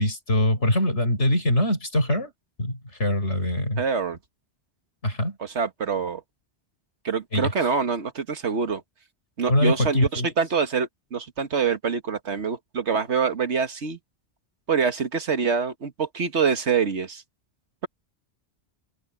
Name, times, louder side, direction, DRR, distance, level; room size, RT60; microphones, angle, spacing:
voice 1, 0.0-2.3 2.6-3.8 5.0-5.4 7.3-7.5 9.5-10.3, left 1 dB, 85° left, 5.7 m, -23 dB
voice 2, 3.8-4.2 5.4-6.2 7.0-8.8 9.4-14.0 14.7-17.2, right 6 dB, 85° right, 1.8 m, -25 dB
omnidirectional pair, 1.1 m